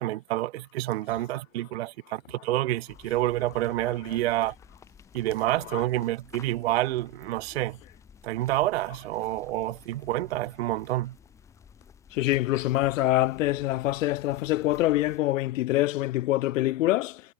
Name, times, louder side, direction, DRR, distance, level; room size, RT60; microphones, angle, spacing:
voice 1, 0.0-4.5 5.1-7.8 8.2-11.1, right 16 dB, 45° right, 0.4 m, -28 dB
sound 1, 2.9-15.2, left 7 dB, 5° left, 0.7 m, -54 dB
voice 2, 12.1-17.2, left 16 dB, 55° left, 0.6 m, -25 dB
supercardioid pair, 175°, 46 cm